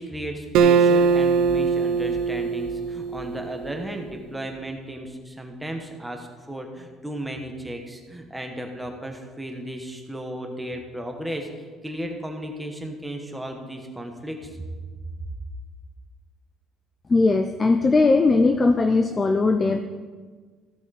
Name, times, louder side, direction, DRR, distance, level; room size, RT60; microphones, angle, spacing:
voice 1, 0.0-14.6, right 1 dB, 5° right, 3 dB, 1.1 m, -35 dB
Acoustic guitar, 0.5-4.0, right 5 dB, 65° right, 0.7 m, -21 dB
voice 2, 17.1-19.8, left 3 dB, 20° left, 7 dB, 0.4 m, -19 dB
15.0 x 8.2 x 4.1 m, 1.5 s
cardioid pair, 170°, 0 cm